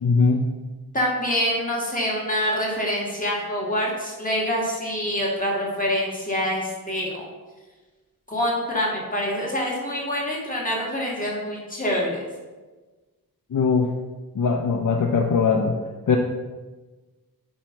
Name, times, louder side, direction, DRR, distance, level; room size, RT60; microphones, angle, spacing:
voice 1, 0.0-0.4 13.5-13.9 14.3-15.8 16.1-16.2, left 5 dB, 55° left, 3 dB, 0.6 m, -20 dB
voice 2, 0.9-7.3 8.3-12.2, equal, 20° left, -4 dB, 2.2 m, -26 dB
8.8 x 3.1 x 5.9 m, 1.3 s
wide cardioid pair, 85°, 37 cm